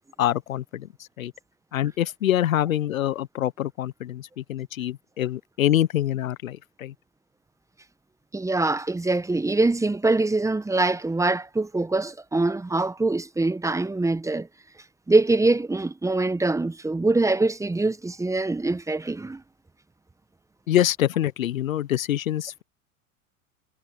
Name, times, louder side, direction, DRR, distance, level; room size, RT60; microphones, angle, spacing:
voice 1, 0.2-0.9 1.2-1.3 1.7-6.9 20.7-22.6, left 12 dB, 70° left, 1.1 m, -25 dB
voice 2, 8.3-14.5 15.1-19.4, right 2 dB, 5° right, 1.5 m, -23 dB
figure-of-eight pair, 90°, 42 cm